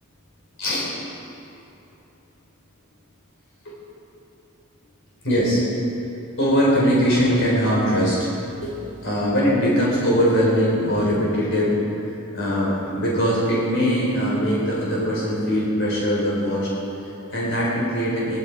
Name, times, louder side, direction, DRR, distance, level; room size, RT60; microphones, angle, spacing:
voice 1, 0.6-0.9 3.6-3.8 5.2-5.6 6.4-16.7 17.0-18.4, equal, 60° left, -6 dB, 4.4 m, -21 dB
21.0 x 12.5 x 4.8 m, 2.8 s
head